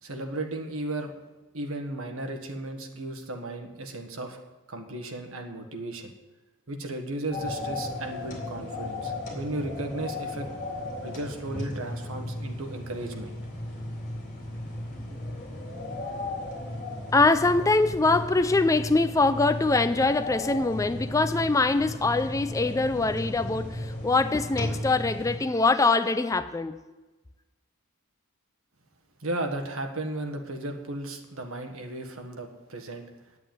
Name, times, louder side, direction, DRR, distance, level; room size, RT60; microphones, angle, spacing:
voice 1, 0.0-1.1 1.5-4.4 4.7-6.1 6.7-10.5 11.0-13.4 29.2-33.0, right 2 dB, 75° right, 1.6 m, -35 dB
sound 1, 7.3-25.4, left 1 dB, 35° left, 3.4 m, -35 dB
sound 2, 12.7-24.0, right 1 dB, 45° right, 3.7 m, -55 dB
voice 2, 17.1-26.8, left 3 dB, 15° left, 0.4 m, -23 dB
9.5 x 8.0 x 9.1 m
head